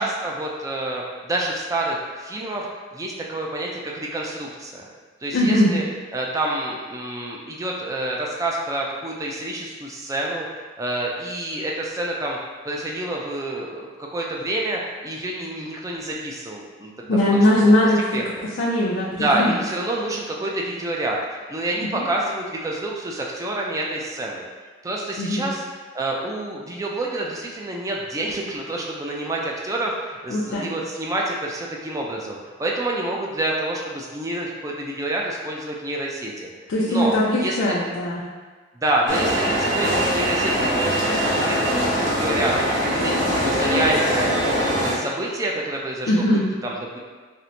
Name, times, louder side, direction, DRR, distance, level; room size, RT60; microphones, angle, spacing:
voice 1, 0.0-2.7 2.9-4.9 5.2-5.8 6.1-10.5 10.8-12.4 12.6-17.7 18.1-18.2 19.2-24.4 24.8-25.6 25.9-36.3 36.9-37.1 37.4-37.8 38.7-44.3 44.6-46.2 46.6-47.0, right 1 dB, 20° right, -2 dB, 0.3 m, -28 dB
voice 2, 5.3-5.7 17.1-19.5 21.8-22.0 25.2-25.5 30.3-30.7 36.7-38.2 46.1-46.5, left 1 dB, 90° left, -6 dB, 0.4 m, -20 dB
sound 1, 39.1-44.9, equal, 75° right, 0.8 m, -22 dB
4.3 x 2.1 x 2.5 m, 1.4 s
head